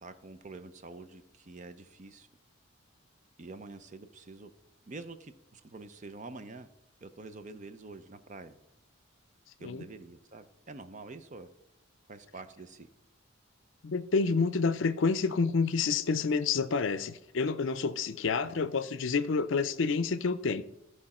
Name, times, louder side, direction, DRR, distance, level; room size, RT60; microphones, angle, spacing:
voice 1, 0.0-2.3 3.4-4.5 4.9-6.7 7.0-8.6 9.6-11.5 12.1-12.9 18.4-18.7, right 3 dB, 35° right, 0.6 m, -47 dB
voice 2, 13.8-20.6, left 4 dB, 65° left, 0.5 m, -28 dB
14.5 x 4.9 x 4.2 m
head